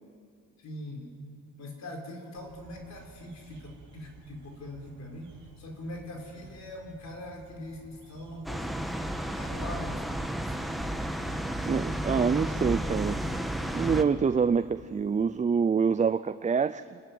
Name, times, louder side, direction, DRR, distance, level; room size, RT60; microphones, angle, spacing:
voice 1, 0.6-1.2 1.6-8.9 9.3-11.4, left 1 dB, 60° left, 2 dB, 4.8 m, -42 dB
sound 1, 2.3-15.2, right 4 dB, 75° right, 2.6 m, -54 dB
sound 2, 8.4-14.0, equal, ahead, 1.5 m, -32 dB
voice 2, 11.7-13.2 13.7-17.0, right 6 dB, 25° right, 12 dB, 0.5 m, -26 dB
29.0 x 12.5 x 9.5 m, 2.2 s
cardioid pair, 90°, 30 cm